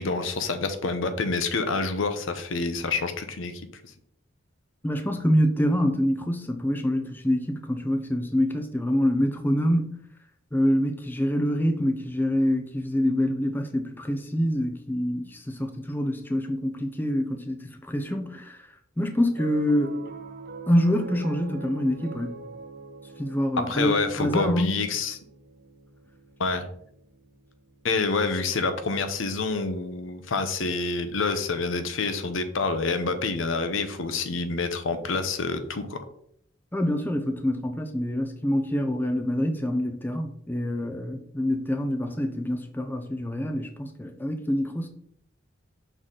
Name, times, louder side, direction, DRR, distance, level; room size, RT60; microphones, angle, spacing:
voice 1, 0.0-3.9 23.7-25.2 26.4-26.7 27.8-36.0, left 4 dB, 70° left, 0.7 m, -27 dB
voice 2, 4.8-9.9 10.5-18.6 19.0-20.0 20.7-22.3 23.2-24.8 36.7-44.9, equal, 10° left, 0.5 m, -26 dB
Piano, 19.3-29.8, right 4 dB, 50° right, 0.8 m, -45 dB
6.3 x 4.0 x 3.8 m
head